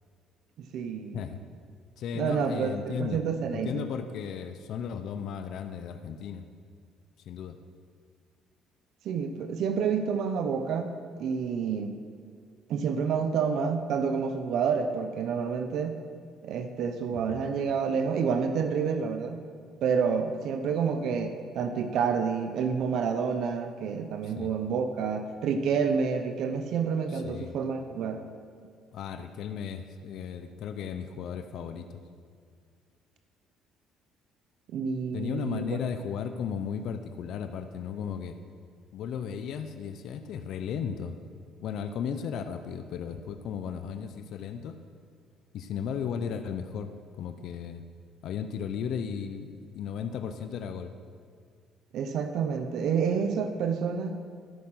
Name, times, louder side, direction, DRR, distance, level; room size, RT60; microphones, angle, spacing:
voice 1, 0.6-1.2 2.1-3.9 9.0-11.9 12.7-16.0 16.4-19.4 19.8-28.2 34.7-35.6 51.9-54.2, right 6 dB, 70° right, 7 dB, 0.8 m, -29 dB
voice 2, 2.0-6.4 7.3-7.6 17.1-17.5 24.2-24.5 27.1-27.6 28.9-32.0 35.1-38.4 38.9-41.2 41.6-44.8 45.5-46.9 47.2-47.8 48.2-50.9, left 7 dB, 70° left, 9 dB, 0.6 m, -35 dB
13.5 x 6.7 x 5.8 m, 2.2 s
cardioid pair, 95°, 0 cm